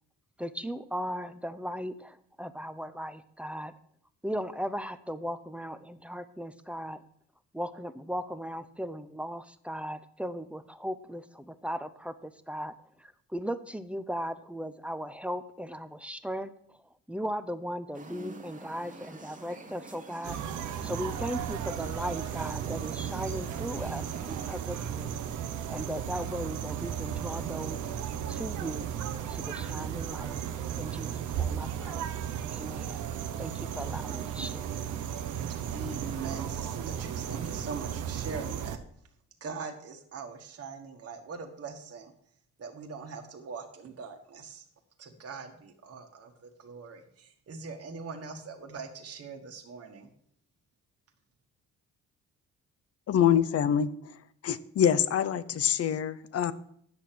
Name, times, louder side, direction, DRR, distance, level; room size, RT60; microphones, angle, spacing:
voice 1, 0.4-3.7 4.2-7.0 7.5-16.8 17.1-20.4 20.8-25.2 25.7-28.0 28.3-28.9 29.3-30.4 30.7-32.1 32.5-33.0 33.4-34.7, equal, 5° right, 12 dB, 0.6 m, -37 dB
sound 1, 17.9-24.6, right 3 dB, 25° right, 1.1 m, -47 dB
sound 2, 20.2-38.8, right 9 dB, 80° right, 0.9 m, -35 dB
voice 2, 35.5-38.8 39.4-42.1 42.6-44.6 45.0-50.1, right 5 dB, 50° right, 4 dB, 1.5 m, -42 dB
voice 3, 53.1-53.9 54.4-56.5, left 9 dB, 50° left, 16 dB, 0.7 m, -25 dB
9.7 x 6.6 x 5.9 m, 0.67 s
cardioid pair, 90°, 30 cm